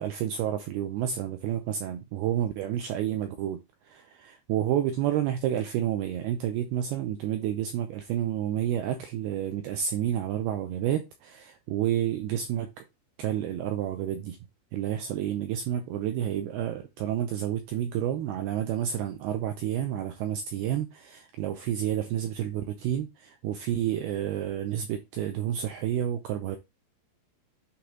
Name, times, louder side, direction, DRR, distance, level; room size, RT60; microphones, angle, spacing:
voice 1, 0.0-3.6 3.9-12.8 13.2-14.4 14.7-26.6, right 10 dB, 80° right, 2.3 m, -30 dB
8.6 x 3.5 x 3.8 m
omnidirectional pair, 5.2 m